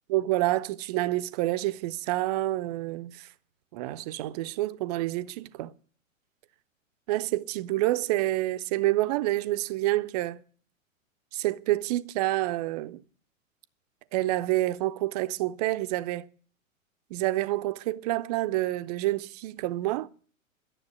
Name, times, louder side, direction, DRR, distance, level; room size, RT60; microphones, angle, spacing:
voice 1, 0.1-3.3 3.7-5.7 7.1-10.4 11.3-13.0 14.1-16.3 17.1-20.1, right 16 dB, 30° right, 0.6 m, -28 dB
12.5 x 7.2 x 9.9 m
figure-of-eight pair, 105°, 40 cm